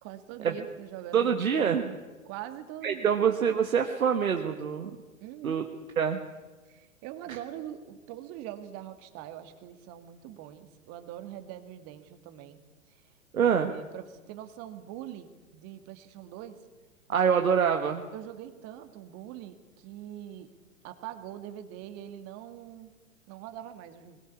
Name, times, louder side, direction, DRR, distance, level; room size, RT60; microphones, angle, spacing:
voice 1, 0.0-1.3 2.3-3.2 5.2-5.7 6.7-12.6 12.9-13.0 13.4-16.6 18.1-20.5 20.8-22.9 23.3-24.2, right 11 dB, 35° right, 10 dB, 2.2 m, -43 dB
voice 2, 1.1-2.0 2.8-5.0 5.4-5.6 6.0-6.2 13.3-13.7 17.1-18.1, right 7 dB, 75° right, 5 dB, 1.6 m, -25 dB
21.0 x 18.5 x 8.5 m, 1.2 s
figure-of-eight pair, 105°, 42 cm